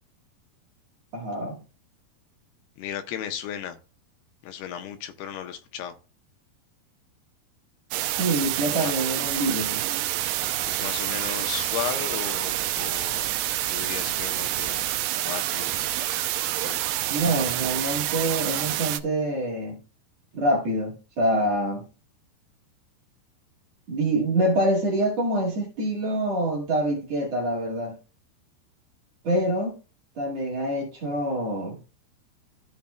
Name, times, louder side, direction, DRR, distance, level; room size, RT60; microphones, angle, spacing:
voice 1, 1.1-1.6 8.2-9.8 17.1-19.8 20.3-21.9 23.9-27.9 29.2-29.8 30.2-31.8, right 1 dB, 50° right, 2.6 m, -26 dB
voice 2, 2.8-3.8 4.4-6.0 8.7-8.9 10.7-13.3 13.7-14.9 15.2-15.8 16.4-16.8, left 9 dB, 80° left, 2.7 m, -35 dB
sound 1, 7.9-19.0, right 14 dB, 85° right, 2.6 m, -27 dB
14.0 x 5.7 x 2.2 m
omnidirectional pair, 4.7 m